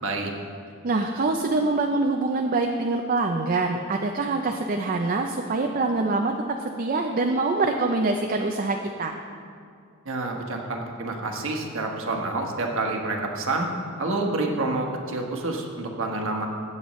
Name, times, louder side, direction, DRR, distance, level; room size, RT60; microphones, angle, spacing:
voice 1, 0.0-0.3 10.0-13.7 14.0-16.5, right 2 dB, 65° right, 1 dB, 1.3 m, -28 dB
voice 2, 0.8-6.3 6.8-9.1, right 3 dB, 40° right, 3 dB, 0.5 m, -24 dB
16.0 x 7.9 x 3.1 m, 2.3 s
head